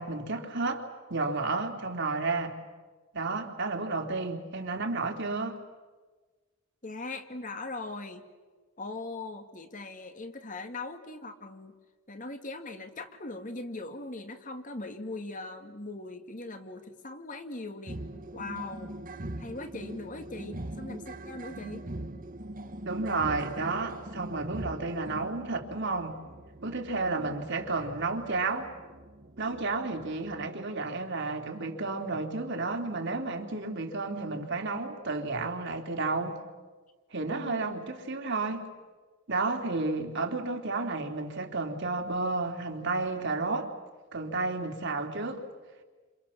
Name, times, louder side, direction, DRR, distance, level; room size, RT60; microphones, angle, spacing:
voice 1, 0.0-2.6 3.1-5.6 22.8-26.1 26.6-28.7 29.4-36.4 37.1-38.6 39.3-43.7 44.1-45.4, right 3 dB, 60° right, 3 dB, 3.1 m, -32 dB
voice 2, 6.8-8.3 8.8-11.8 12.1-18.0 18.3-18.9 19.4-21.8 27.2-27.3 37.3-37.8, left 2 dB, 40° left, 7 dB, 2.3 m, -40 dB
sound 1, 17.9-30.5, right 1 dB, 40° right, 1.3 m, -42 dB
29.0 x 28.0 x 7.2 m, 1.3 s
head